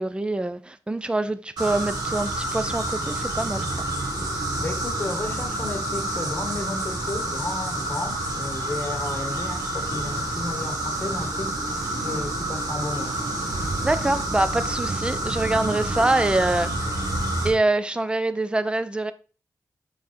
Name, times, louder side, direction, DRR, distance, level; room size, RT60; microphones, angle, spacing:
voice 1, 0.0-3.7 13.8-16.7 17.4-19.1, right 2 dB, 15° right, 0.6 m, -24 dB
sound 1, 1.6-17.5, right 1 dB, 80° right, 2.6 m, -28 dB
voice 2, 4.2-13.6, left 2 dB, 30° left, 1.8 m, -33 dB
5.9 x 4.9 x 4.3 m
wide cardioid pair, 90°, 7 cm